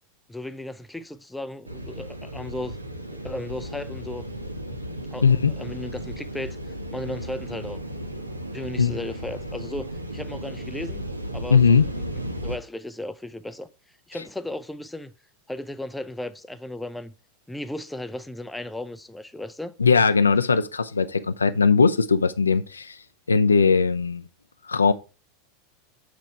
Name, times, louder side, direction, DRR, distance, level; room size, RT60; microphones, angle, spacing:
voice 1, 0.3-2.8 3.1-4.3 5.1-7.8 8.5-13.7 14.1-15.1 15.5-17.1 17.5-19.7, left 1 dB, 5° left, 0.4 m, -35 dB
sound 1, 1.7-12.6, right 1 dB, 85° right, 0.7 m, -35 dB
voice 2, 5.2-5.5 8.8-8.9 11.5-11.9 19.8-23.0 23.3-24.2 24.7-24.9, left 5 dB, 80° left, 0.4 m, -19 dB
7.6 x 4.1 x 4.5 m
figure-of-eight pair, 85°, 0 cm